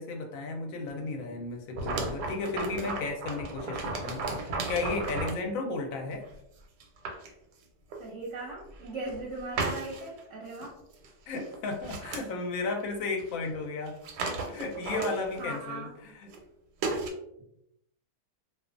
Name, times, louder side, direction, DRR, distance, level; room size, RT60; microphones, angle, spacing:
voice 1, 0.0-6.2 11.3-14.0 14.4-16.3, left 3 dB, 70° left, 2 dB, 0.9 m, -34 dB
sound 1, 1.7-5.4 6.2-6.3 6.8-7.3 7.9-8.0 8.8-9.2 9.6-10.2 10.5-10.7 10.9-11.1 11.4-12.3 13.2-13.3 13.5-13.6 13.9-15.5 16.3-16.4 16.8-17.1, right 3 dB, 85° right, 1.1 m, -34 dB
voice 2, 8.0-10.8 15.4-15.9, right 2 dB, 65° right, -3 dB, 0.8 m, -38 dB
2.5 x 2.3 x 2.4 m, 0.79 s
omnidirectional pair, 1.7 m